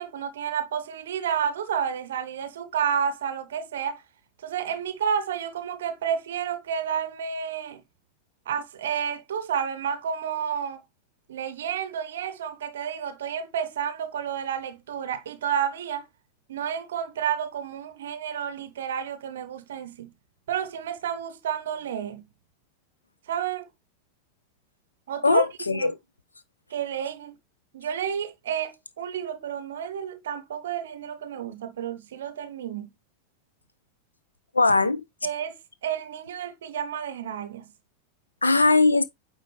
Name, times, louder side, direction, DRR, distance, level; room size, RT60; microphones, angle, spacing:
voice 1, 0.0-4.0 4.4-7.8 8.5-10.8 11.3-16.1 16.5-20.1 20.5-22.2 23.3-23.7 25.1-25.9 26.7-27.4 27.7-32.9 35.2-37.7, right 8 dB, 60° right, 0.6 m, -30 dB
voice 2, 25.2-26.0 34.5-35.0 38.4-39.0, left 3 dB, 80° left, 0.7 m, -20 dB
9.0 x 3.8 x 3.1 m
figure-of-eight pair, 90°, 0 cm